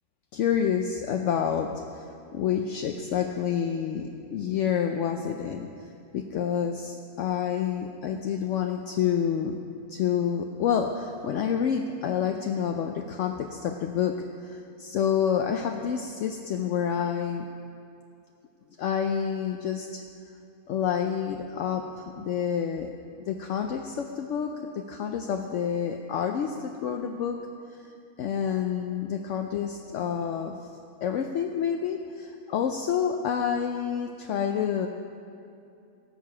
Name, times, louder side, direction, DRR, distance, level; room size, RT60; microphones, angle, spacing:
voice 1, 0.3-2.1 2.3-5.9 6.1-9.6 9.9-17.5 18.8-20.0 20.7-22.9 23.3-27.5 27.8-27.9 28.2-30.6 31.0-34.9, left 8 dB, 65° left, 4 dB, 0.7 m, -28 dB
16.5 x 6.6 x 6.0 m, 2.6 s
omnidirectional pair, 1.7 m